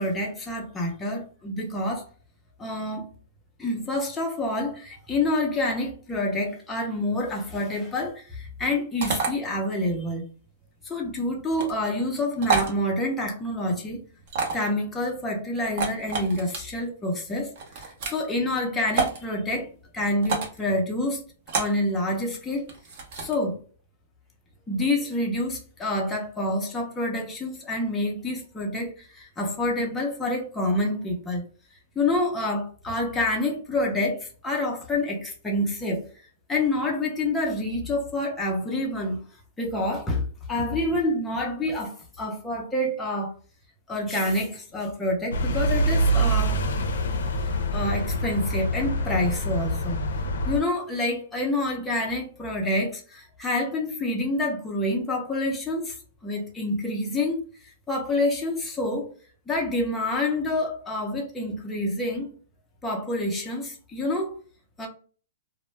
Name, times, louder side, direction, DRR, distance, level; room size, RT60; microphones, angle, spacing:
voice 1, 0.0-2.1 2.6-3.1 3.6-10.3 10.8-14.0 14.5-21.2 21.5-22.7 23.2-23.6 24.7-31.4 32.0-36.1 36.5-39.2 39.6-43.3 43.9-46.6 47.7-50.0 50.5-56.0 56.2-59.2 59.5-62.3 62.8-64.4 64.8-64.9, left 1 dB, 10° left, 0.5 m, -27 dB
sound 1, 9.0-9.3 11.5-11.7 12.4-12.7 14.3-14.7 15.6-16.6 17.6-18.2 18.9-19.2 20.2-20.6 21.5-21.8 22.7-23.4, right 5 dB, 45° right, 0.7 m, -28 dB
sound 2, 45.3-50.6, right 1 dB, 75° left, 0.5 m, -25 dB
2.1 x 2.0 x 3.1 m
hypercardioid pair, 160°, 0 cm